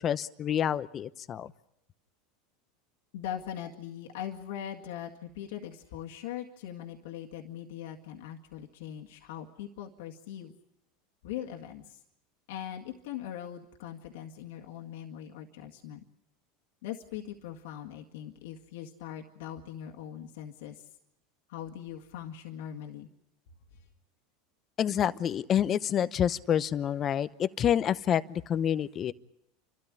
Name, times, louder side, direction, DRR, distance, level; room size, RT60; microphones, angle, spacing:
voice 1, 0.0-1.5 24.8-29.1, left 9 dB, 35° left, 15 dB, 0.9 m, -28 dB
voice 2, 3.1-10.5 11.2-12.0 12.5-16.0 16.8-20.9 21.5-23.1 23.7-23.8, left 10 dB, 75° left, 1 dB, 1.9 m, -41 dB
30.0 x 13.0 x 9.9 m, 0.80 s
supercardioid pair, 110°, 0 cm